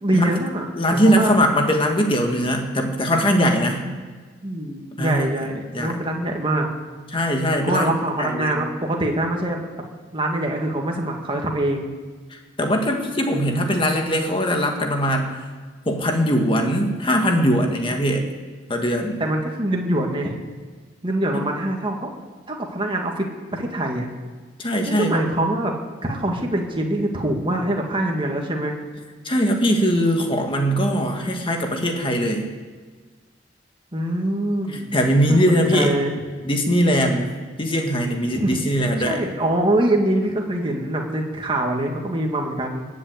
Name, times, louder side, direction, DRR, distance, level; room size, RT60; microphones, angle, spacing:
voice 1, 0.0-1.3 3.6-4.0 4.4-6.7 7.6-9.7 10.1-11.9 19.2-20.4 21.0-22.1 22.5-24.1 24.9-25.7 26.0-28.7 33.9-34.9 35.3-36.2 38.3-38.6 39.1-42.9, right 1 dB, 30° right, 1 dB, 1.9 m, -24 dB
voice 2, 0.8-3.8 5.0-5.3 5.7-6.0 7.1-7.9 8.2-8.6 12.3-15.4 15.9-18.3 18.7-19.2 24.6-25.2 29.3-32.5 34.9-36.0 36.4-37.3 37.6-39.2, equal, 30° left, 3 dB, 1.9 m, -21 dB
20.0 x 7.5 x 8.1 m, 1.4 s
head